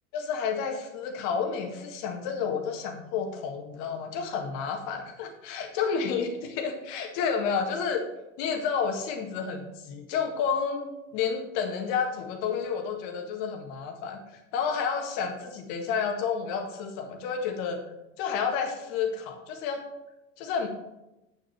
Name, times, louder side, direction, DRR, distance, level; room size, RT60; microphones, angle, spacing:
voice 1, 0.1-8.0 8.4-17.8 18.2-19.9 20.4-20.7, left 6 dB, 50° left, 4 dB, 1.7 m, -30 dB
9.3 x 6.5 x 4.5 m, 0.93 s
hypercardioid pair, 90°, 39 cm